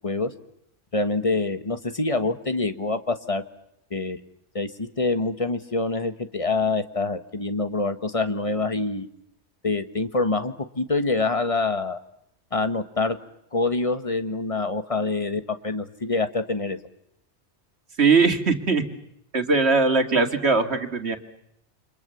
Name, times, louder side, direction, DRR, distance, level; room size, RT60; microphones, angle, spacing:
voice 1, 0.9-3.4 3.9-4.2 4.5-9.1 9.6-12.0 12.5-13.2 13.5-16.8, left 3 dB, 30° left, 9 dB, 1.7 m, -26 dB
voice 2, 18.0-18.8 19.3-21.2, right 4 dB, 65° right, 6 dB, 2.6 m, -20 dB
29.0 x 26.0 x 7.1 m, 0.78 s
omnidirectional pair, 1.2 m